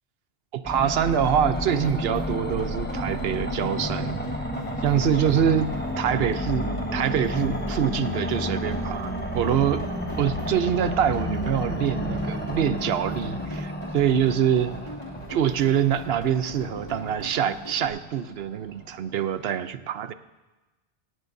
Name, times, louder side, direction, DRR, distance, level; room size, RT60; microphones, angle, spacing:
voice 1, 0.5-4.2 4.8-5.7 6.0-9.8 10.2-14.7 15.3-20.1, right 9 dB, 70° right, 12 dB, 0.9 m, -25 dB
sound 1, 0.6-19.4, equal, 10° left, 1.1 m, -31 dB
sound 2, 1.2-17.9, left 1 dB, 30° left, 2.4 m, -41 dB
17.5 x 17.0 x 2.7 m, 1.1 s
omnidirectional pair, 1.1 m